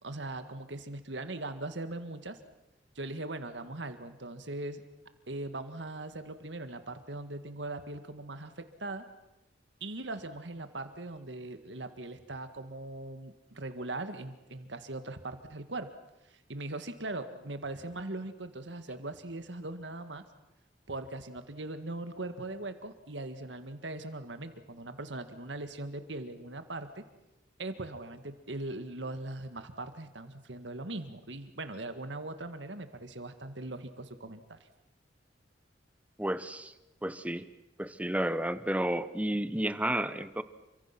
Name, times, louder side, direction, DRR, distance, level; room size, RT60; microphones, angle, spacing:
voice 1, 0.0-2.4 2.9-4.8 5.3-9.1 9.8-15.9 16.5-20.2 20.9-27.0 27.6-34.6, right 2 dB, 80° right, 9 dB, 1.9 m, -40 dB
voice 2, 36.2-36.7 37.0-37.5 37.8-40.4, right 1 dB, 10° right, 13 dB, 1.0 m, -31 dB
29.0 x 25.0 x 6.0 m, 0.98 s
head